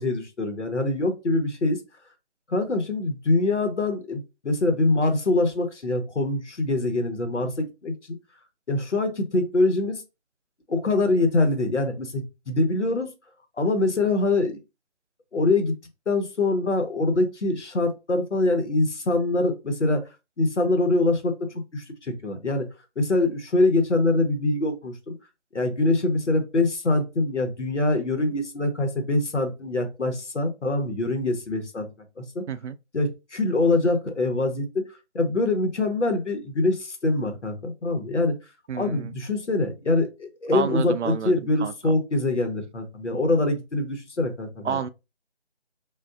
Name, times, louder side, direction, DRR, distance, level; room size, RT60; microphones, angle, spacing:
voice 1, 0.0-1.8 2.5-7.9 8.7-10.0 10.7-13.1 13.6-14.6 15.3-15.7 16.1-20.0 20.4-21.3 21.7-22.7 23.0-25.1 25.5-31.9 32.2-32.4 32.9-34.8 35.1-38.3 38.7-44.8, left 2 dB, 85° left, 1.1 m, -24 dB
voice 2, 38.7-39.1 40.5-41.3 41.6-41.9 44.6-44.9, right 7 dB, 80° right, 0.5 m, -29 dB
3.6 x 2.5 x 2.4 m
figure-of-eight pair, 170°, 34 cm